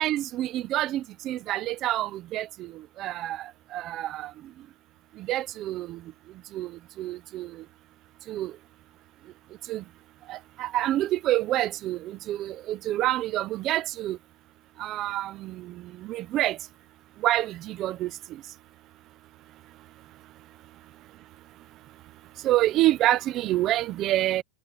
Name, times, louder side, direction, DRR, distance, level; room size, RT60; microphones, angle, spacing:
voice 1, 0.0-2.7 3.0-3.4 3.7-4.3 5.3-6.0 6.5-6.7 7.0-7.5 8.3-8.5 9.7-9.8 10.3-14.2 14.8-15.7 16.0-16.6 17.2-18.1 22.4-24.4, right 14 dB, 25° right, 0.7 m, -27 dB
supercardioid pair, 175°, 0 cm